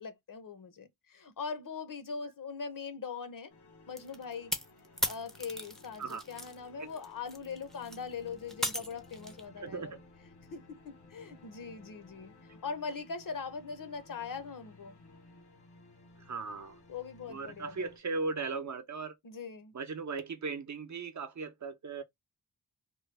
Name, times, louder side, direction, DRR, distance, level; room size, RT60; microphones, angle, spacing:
voice 1, 0.0-3.5 3.9-4.5 5.0-9.9 10.5-15.0 16.9-17.8 19.2-19.7, left 5 dB, 55° left, 0.8 m, -41 dB
sound 1, 3.5-18.0, left 2 dB, 90° left, 1.1 m, -57 dB
sound 2, 4.0-6.6 6.9-9.4, equal, ahead, 0.5 m, -37 dB
voice 2, 9.6-10.0 16.2-16.8 17.3-19.2 19.7-22.0, right 4 dB, 45° right, 0.7 m, -37 dB
3.0 x 2.2 x 3.2 m
wide cardioid pair, 90°, 38 cm